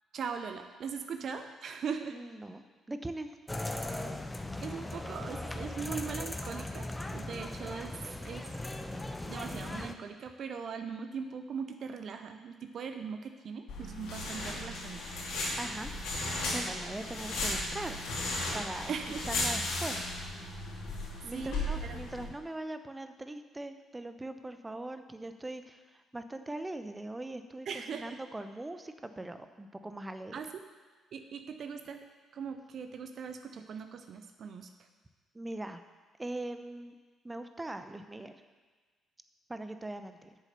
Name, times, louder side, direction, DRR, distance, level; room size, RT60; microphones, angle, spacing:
voice 1, 0.1-2.2 4.6-8.5 9.3-15.0 18.9-19.2 21.3-22.0 27.7-28.2 30.3-30.5 31.1-32.0 32.3-34.7, right 6 dB, 55° right, 7 dB, 0.6 m, -40 dB
voice 2, 2.1-3.3 15.6-18.0 18.5-18.9 19.2-20.0 21.2-30.4 35.3-35.8 36.2-37.0 37.2-38.4 39.5-40.3, right 2 dB, 20° right, 9 dB, 0.8 m, -41 dB
sound 1, 3.5-9.9, left 1 dB, 15° left, 0.8 m, -38 dB
sound 2, 13.7-22.2, left 2 dB, 65° left, 2.7 m, -35 dB
8.2 x 7.2 x 6.8 m, 1.4 s
hypercardioid pair, 45°, 0 cm